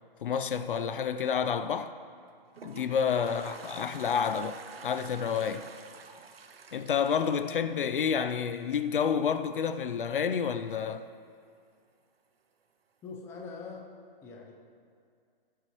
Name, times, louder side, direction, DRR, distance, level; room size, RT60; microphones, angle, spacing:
voice 1, 0.2-2.0 2.6-5.7 6.7-11.1, left 7 dB, 60° left, 0.6 m, -29 dB
Toilet flush, 2.2-8.5, right 5 dB, 80° right, 0.9 m, -49 dB
voice 2, 3.3-3.7 13.0-13.9 14.2-14.5, left 4 dB, 10° left, 0.7 m, -44 dB
19.0 x 8.1 x 3.1 m
hypercardioid pair, 150°, 29 cm